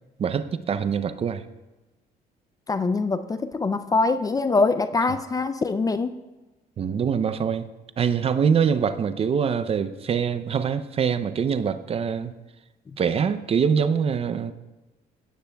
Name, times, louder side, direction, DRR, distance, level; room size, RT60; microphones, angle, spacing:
voice 1, 0.2-1.4 6.8-7.7 8.0-12.3 13.0-14.5, right 7 dB, 35° right, 12 dB, 0.5 m, -24 dB
voice 2, 2.7-6.1, left 3 dB, 20° left, 12 dB, 0.4 m, -23 dB
17.0 x 9.3 x 2.3 m, 1.1 s
cardioid pair, 110°, 17 cm